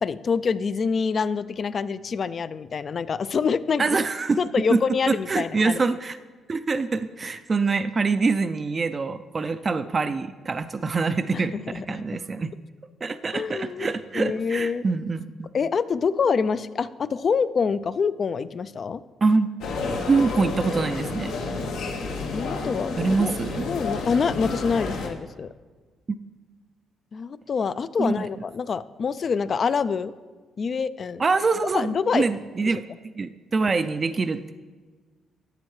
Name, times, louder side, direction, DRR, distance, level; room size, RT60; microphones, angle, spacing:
voice 1, 0.0-4.0 4.4-5.8 11.3-12.1 13.3-14.8 15.5-19.0 22.3-23.3 23.7-25.5 27.1-30.1 30.6-31.2 31.7-32.3 32.7-32.8, left 5 dB, 45° left, 15 dB, 0.3 m, -26 dB
voice 2, 3.8-4.4 4.7-4.8 5.1-6.2 6.5-11.5 11.9-12.5 13.0-15.5 19.2-19.5 20.1-21.3 23.0-23.6 28.0-28.3 31.2-32.8 33.2-34.5, right 4 dB, 35° right, 11 dB, 0.3 m, -25 dB
sound 1, 19.6-25.1, left 3 dB, 85° left, 1.0 m, -30 dB
11.5 x 7.6 x 3.2 m, 1.4 s
cardioid pair, 90°, 0 cm